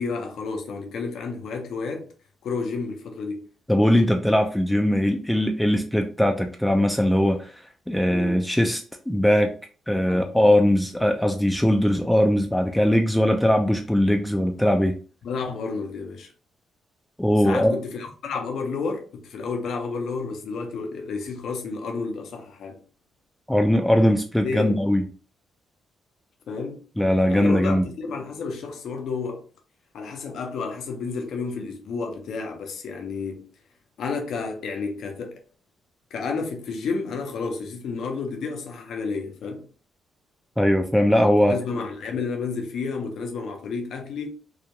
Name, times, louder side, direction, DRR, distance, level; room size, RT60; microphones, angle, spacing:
voice 1, 0.0-2.1 2.4-3.5 8.0-8.5 10.1-10.3 15.2-16.3 17.4-22.8 24.4-24.8 26.5-26.8 27.3-29.4 29.9-33.5 34.0-35.4 36.1-39.7 41.4-44.3, left 4 dB, 75° left, 0.6 m, -31 dB
voice 2, 3.7-9.5 9.9-15.0 17.2-17.7 23.5-25.0 27.0-27.8 40.6-41.6, equal, 5° left, 0.3 m, -20 dB
2.3 x 2.1 x 2.8 m
cardioid pair, 75°, 0 cm